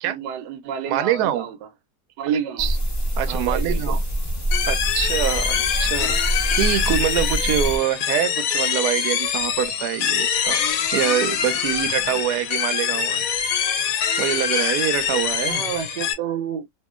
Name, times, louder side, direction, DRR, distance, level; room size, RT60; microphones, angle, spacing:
voice 1, 0.0-1.6 2.2-2.7 3.3-4.0 6.0-6.1 14.6-14.7 15.5-16.6, right 8 dB, 90° right, 1.3 m, -29 dB
voice 2, 0.9-1.5 2.6-2.8 3.2-4.0 4.7-6.2 6.6-10.7 10.9-13.2 14.2-15.6, right 11 dB, 70° right, 1.0 m, -25 dB
sound 1, 2.6-7.8, right 1 dB, 30° left, 1.0 m, -25 dB
sound 2, 4.5-16.1, left 8 dB, 70° left, 0.9 m, -24 dB
2.9 x 2.8 x 2.3 m
omnidirectional pair, 1.9 m